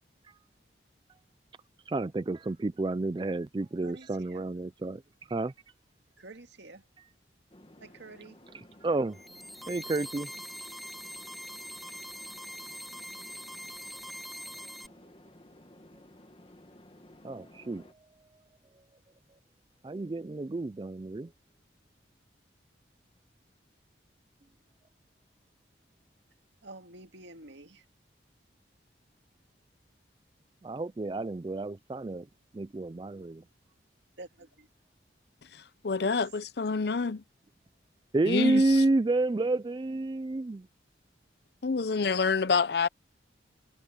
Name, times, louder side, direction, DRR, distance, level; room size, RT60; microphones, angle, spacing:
voice 1, 1.9-5.0 5.3-5.5 8.8-9.2 9.7-10.3 17.2-17.8 19.8-21.3 30.6-32.3 32.5-33.4 38.1-40.7, right 2 dB, 25° right, 0.3 m, -29 dB
voice 2, 3.8-4.5 6.2-6.9 7.8-8.4 26.6-27.9 34.2-34.7 36.0-36.3, right 2 dB, 80° right, 2.1 m, -49 dB
sound 1, 7.5-17.9, left 1 dB, 30° left, 1.6 m, -55 dB
sound 2, 9.1-14.9, equal, ahead, 1.7 m, -43 dB
voice 3, 35.5-37.2 38.3-38.8 41.6-42.9, left 4 dB, 60° left, 0.6 m, -28 dB
head